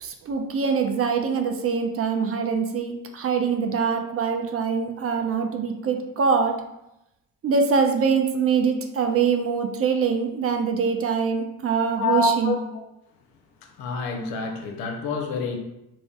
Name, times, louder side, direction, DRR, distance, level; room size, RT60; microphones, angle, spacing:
voice 1, 0.0-6.6 7.4-12.5, right 5 dB, 40° right, 5 dB, 0.5 m, -24 dB
voice 2, 12.0-12.8 13.6-15.6, left 3 dB, 70° left, 3 dB, 0.6 m, -27 dB
2.5 x 2.0 x 3.5 m, 0.86 s
hypercardioid pair, 55°, 38 cm